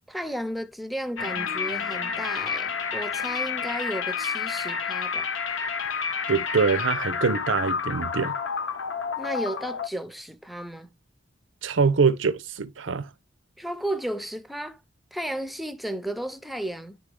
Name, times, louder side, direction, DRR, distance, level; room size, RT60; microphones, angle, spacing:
voice 1, 0.1-5.3 9.2-10.9 13.6-14.8 15.1-17.0, right 1 dB, ahead, 0.5 m, -33 dB
sound 1, 1.2-9.9, left 6 dB, 90° left, 0.8 m, -30 dB
voice 2, 6.3-8.3 11.6-13.1, right 5 dB, 90° right, 0.6 m, -24 dB
10.5 x 3.5 x 3.4 m
head